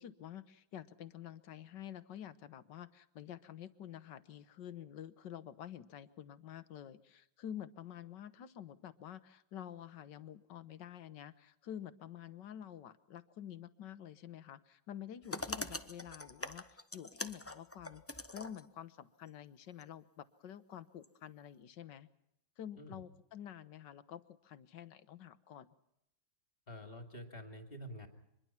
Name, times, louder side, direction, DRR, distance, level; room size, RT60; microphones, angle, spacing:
voice 1, 0.0-22.1 22.6-25.7, left 10 dB, 70° left, 14 dB, 1.7 m, -49 dB
sound 1, 15.2-18.7 19.8-19.9 21.0-21.1, left 2 dB, 15° left, 0.5 m, -44 dB
voice 2, 26.7-28.1, equal, 30° left, 5 dB, 2.9 m, -48 dB
25.5 x 21.5 x 5.9 m, 0.82 s
omnidirectional pair, 2.0 m